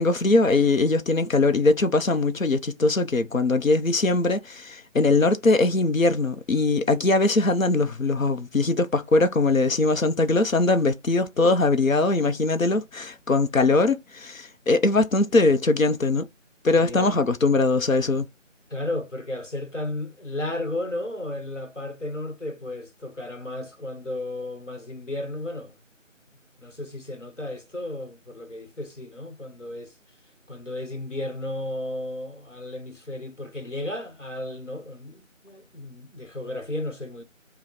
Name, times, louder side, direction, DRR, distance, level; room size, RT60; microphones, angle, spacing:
voice 1, 0.0-16.3 16.6-18.3, left 3 dB, 85° left, 0.8 m, -21 dB
voice 2, 16.8-17.1 18.7-25.7 26.6-29.9 30.5-37.2, left 1 dB, 65° left, 1.2 m, -34 dB
5.3 x 2.3 x 4.3 m
figure-of-eight pair, 180°, 39 cm